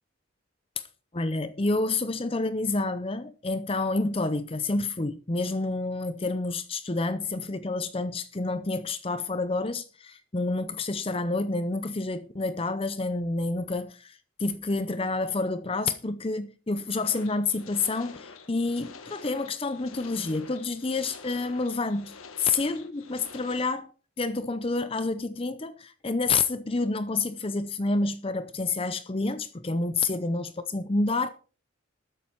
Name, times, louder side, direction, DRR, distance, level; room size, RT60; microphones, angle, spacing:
voice 1, 1.1-23.9 24.2-31.3, left 3 dB, 25° left, 0.6 m, -29 dB
sound 1, 17.0-23.6, left 4 dB, 85° left, 1.7 m, -47 dB
13.0 x 9.6 x 4.6 m
head